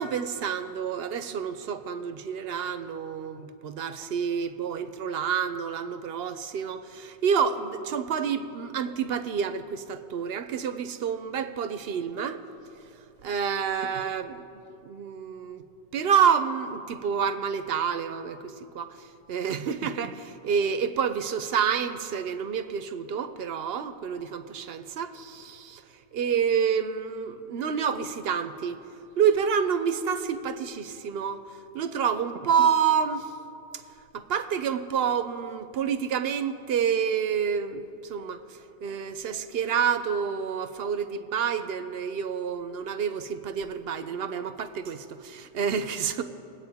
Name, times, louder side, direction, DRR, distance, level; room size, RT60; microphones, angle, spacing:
voice 1, 0.0-12.4 13.2-14.4 14.8-15.6 15.9-19.0 19.3-25.8 26.1-28.8 29.2-31.4 31.7-33.3 34.1-38.4 38.8-46.2, right 7 dB, 70° right, 11 dB, 0.8 m, -28 dB
22.0 x 8.6 x 3.5 m, 2.8 s
omnidirectional pair, 1.1 m